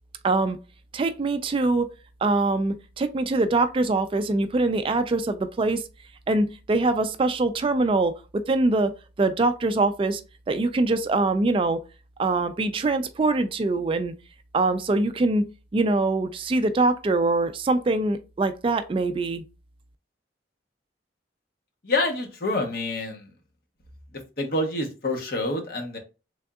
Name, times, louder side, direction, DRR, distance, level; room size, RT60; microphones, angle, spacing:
voice 1, 0.2-0.6 0.9-1.9 2.2-5.8 6.3-8.2 8.5-8.9 9.2-10.2 10.5-11.8 12.2-14.1 14.5-15.4 15.7-19.4, right 2 dB, 30° right, 0.3 m, -23 dB
voice 2, 21.8-23.3 24.4-26.0, left 2 dB, 55° left, 0.9 m, -27 dB
3.7 x 3.4 x 2.3 m
head